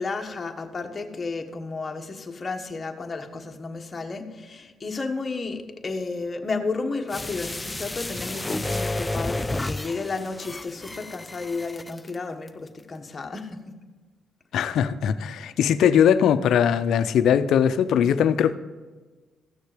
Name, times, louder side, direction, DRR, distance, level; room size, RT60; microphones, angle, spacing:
voice 1, 0.0-13.8, left 3 dB, 30° left, 1.3 m, -32 dB
sound 1, 7.1-12.1 12.5-12.6, left 2 dB, 15° left, 0.4 m, -31 dB
voice 2, 14.5-18.5, left 8 dB, 75° left, 0.6 m, -20 dB
15.0 x 6.5 x 5.0 m
cardioid pair, 90°, 0 cm